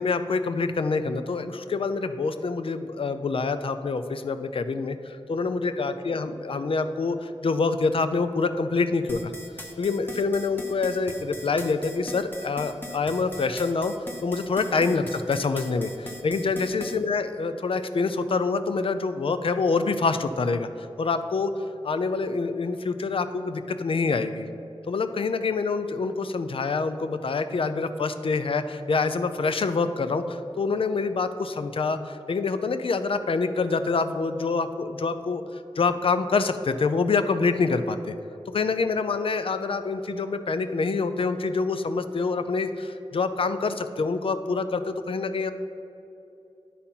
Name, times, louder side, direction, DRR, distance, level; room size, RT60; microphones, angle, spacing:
voice 1, 0.0-9.3 9.8-13.9 14.2-20.7 21.0-21.5 21.8-24.5 24.9-35.4 35.8-38.1 38.5-45.5, left 4 dB, 65° left, 10 dB, 0.5 m, -26 dB
sound 1, 9.1-17.0, left 1 dB, 20° left, 1.1 m, -40 dB
10.0 x 4.2 x 5.6 m, 2.9 s
cardioid pair, 50°, 10 cm